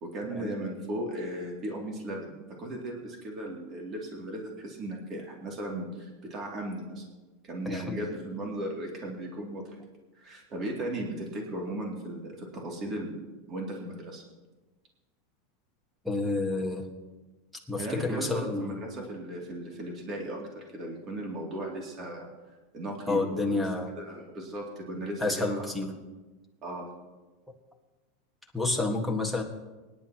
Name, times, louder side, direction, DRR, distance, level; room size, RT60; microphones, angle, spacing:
voice 1, 0.0-7.0 7.4-9.6 10.1-13.2 13.5-14.2 17.8-22.3 22.7-23.7 24.0-26.0 26.6-26.9, right 1 dB, 30° right, -1 dB, 2.6 m, -36 dB
voice 2, 7.6-8.0 16.0-16.8 17.7-18.8 23.1-23.9 25.2-25.9 28.5-29.4, left 2 dB, ahead, 3 dB, 1.6 m, -29 dB
24.5 x 10.5 x 2.9 m, 1.2 s
supercardioid pair, 155°, 0 cm